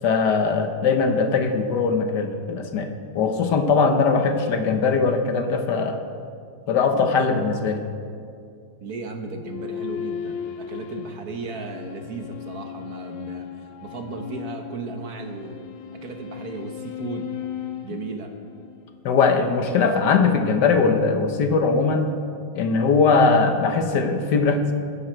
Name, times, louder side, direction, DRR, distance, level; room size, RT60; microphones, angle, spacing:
voice 1, 0.0-2.9 3.1-6.0 6.7-7.8 19.0-22.1 22.5-24.7, left 4 dB, 65° left, 6 dB, 1.6 m, -20 dB
voice 2, 8.8-15.6 15.9-17.3 17.8-18.3, right 4 dB, 55° right, 5 dB, 1.5 m, -35 dB
sound 1, 9.4-19.0, left 8 dB, 90° left, 1.5 m, -36 dB
21.0 x 10.0 x 4.5 m, 2.3 s
omnidirectional pair, 2.0 m